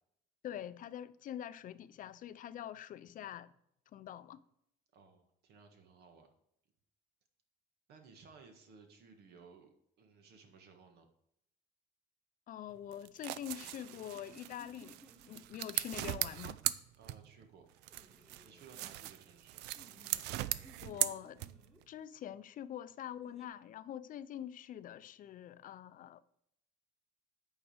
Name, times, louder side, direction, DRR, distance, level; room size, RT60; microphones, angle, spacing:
voice 1, 0.4-3.5 3.9-4.4 12.5-15.0 15.3-16.6 20.8-21.4 21.9-26.2, left 10 dB, 55° left, 0.5 m, -45 dB
voice 2, 4.9-6.3 7.9-11.1 17.0-17.7 18.4-19.6, right 5 dB, 70° right, 1.6 m, -59 dB
sound 1, 12.9-17.5 17.8-21.8, right 15 dB, 90° right, 0.4 m, -39 dB
sound 2, 13.4-16.4 17.9-18.9 19.7-21.8 23.2-23.5, equal, ahead, 1.3 m, -61 dB
8.6 x 4.9 x 5.0 m
cardioid pair, 110°, 17 cm